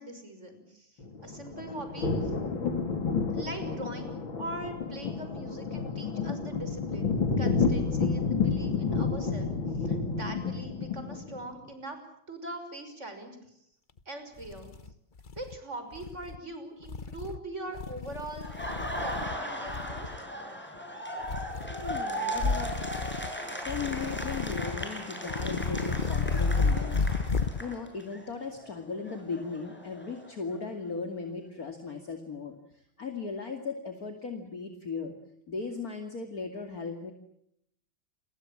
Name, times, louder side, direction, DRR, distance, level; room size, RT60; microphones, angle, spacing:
voice 1, 0.0-2.4 3.3-12.0 12.3-13.6 14.1-14.8 15.3-18.5 19.0-20.1, right 1 dB, 35° right, 8 dB, 6.4 m, -42 dB
sound 1, 1.0-11.4, left 4 dB, 80° left, 4.1 m, -30 dB
sound 2, 14.0-14.1 14.4-15.6 15.9-16.4 16.8-17.4 17.7-19.4 19.7-20.2 21.2-22.0 22.4-23.3 23.7-24.9 25.3-27.6, left 4 dB, 30° left, 1.0 m, -32 dB
Laughter, 18.4-28.2 28.6-30.6, equal, 5° left, 6.4 m, -37 dB
voice 2, 21.7-22.7 23.3-27.1 27.3-35.1 35.5-37.1, left 4 dB, 45° left, 5 dB, 2.9 m, -37 dB
29.5 x 23.0 x 7.4 m, 0.75 s
omnidirectional pair, 2.1 m